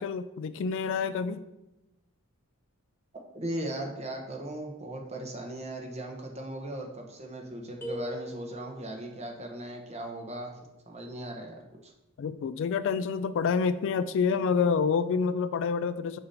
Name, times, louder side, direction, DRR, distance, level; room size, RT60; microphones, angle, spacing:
voice 1, 0.0-1.4 12.2-16.2, left 5 dB, 60° left, 14 dB, 0.3 m, -28 dB
voice 2, 3.3-10.5 10.9-11.9, right 1 dB, 30° right, 2 dB, 1.0 m, -38 dB
sound 1, 7.8-9.0, equal, 10° left, 1.2 m, -39 dB
6.6 x 2.8 x 5.6 m, 0.94 s
head